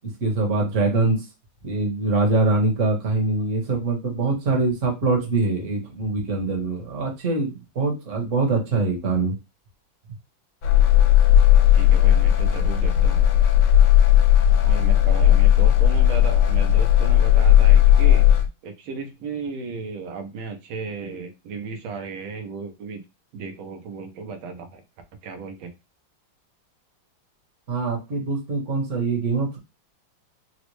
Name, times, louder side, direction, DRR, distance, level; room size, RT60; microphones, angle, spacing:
voice 1, 0.2-1.2 1.6-9.3 27.7-29.6, right 3 dB, 45° right, 1 dB, 1.2 m, -23 dB
sound 1, 10.6-18.5, left 11 dB, 70° left, 1.2 m, -16 dB
voice 2, 11.7-13.2 14.6-18.2 18.6-23.0 23.3-24.8 25.2-25.7, right 4 dB, 90° right, 5 dB, 1.5 m, -34 dB
4.0 x 2.0 x 3.0 m, 0.25 s
omnidirectional pair, 2.2 m